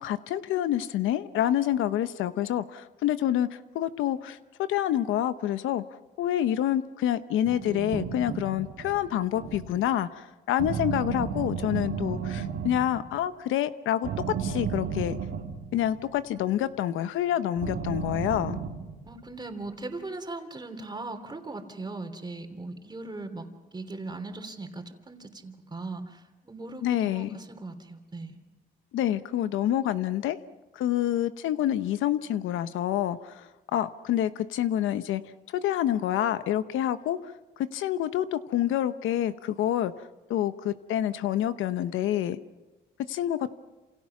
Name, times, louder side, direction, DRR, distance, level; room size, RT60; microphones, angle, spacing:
voice 1, 0.0-4.4 4.7-5.8 6.2-14.1 14.4-15.2 15.7-18.6 26.8-27.4 28.9-30.4 30.7-35.2 35.5-39.9 40.3-42.4 43.1-43.5, left 11 dB, 85° left, 12 dB, 0.9 m, -27 dB
sound 1, 7.4-9.8 10.6-13.2 14.0-16.1 17.6-19.3, right 7 dB, 85° right, 2.9 m, -34 dB
voice 2, 19.0-28.4, right 2 dB, 20° right, 6 dB, 3.3 m, -39 dB
28.0 x 28.0 x 6.0 m, 1.1 s
cardioid pair, 90°, 20 cm